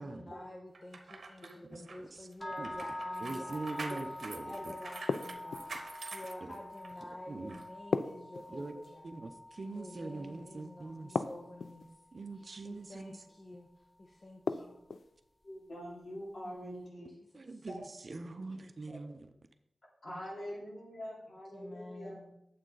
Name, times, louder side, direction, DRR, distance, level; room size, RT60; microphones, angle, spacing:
voice 1, 0.0-4.0 4.4-9.3 9.7-11.9 12.4-14.7 16.4-17.1 17.3-17.7 21.5-22.3, left 1 dB, 45° left, 0 dB, 1.1 m, -50 dB
sound 1, 0.7-7.0 7.5-7.6, right 3 dB, 65° right, 1.0 m, -47 dB
sound 2, 2.4-12.5, left 1 dB, 15° left, 0.5 m, -46 dB
voice 2, 3.2-4.7 6.4-6.5 7.3-7.5 8.5-8.7 9.0-11.2 12.1-13.2 17.3-19.3, right 3 dB, 45° right, 7 dB, 0.7 m, -43 dB
sound 3, 5.1-5.9 7.9-9.0 11.1-11.9 14.5-15.1, left 4 dB, 85° left, 0.4 m, -35 dB
voice 3, 15.4-17.1 17.7-17.8 18.9-19.0 20.0-22.2, equal, 65° left, -5 dB, 3.6 m, -44 dB
8.9 x 7.6 x 4.0 m, 0.83 s
wide cardioid pair, 110°, 0 cm